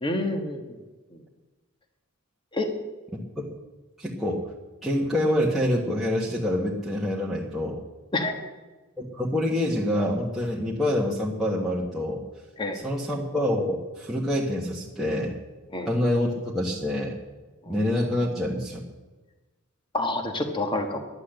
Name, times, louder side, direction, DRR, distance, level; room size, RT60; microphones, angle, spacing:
voice 1, 0.0-0.8 1.1-1.2 2.5-2.7 8.1-8.3 12.6-12.8 15.7-15.9 17.6-17.7 19.9-21.0, left 2 dB, 20° left, 5 dB, 1.4 m, -28 dB
voice 2, 3.1-3.5 4.0-4.4 4.8-7.8 9.0-12.2 12.7-15.3 15.9-17.2 17.7-18.8, left 1 dB, ahead, -6 dB, 1.4 m, -26 dB
12.0 x 11.0 x 7.8 m, 1.2 s
head